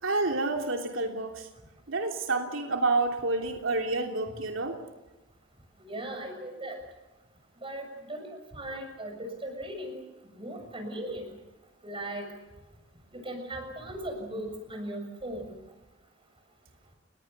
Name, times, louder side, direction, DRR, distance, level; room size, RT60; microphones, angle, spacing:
voice 1, 0.0-1.5 1.9-4.8, right 3 dB, 80° right, 3 dB, 3.1 m, -29 dB
voice 2, 5.9-6.8 7.6-8.3 8.5-10.0 10.4-11.3 11.8-12.3 13.2-15.6, right 1 dB, 25° right, 5 dB, 6.9 m, -38 dB
29.5 x 21.5 x 6.8 m, 1.1 s
head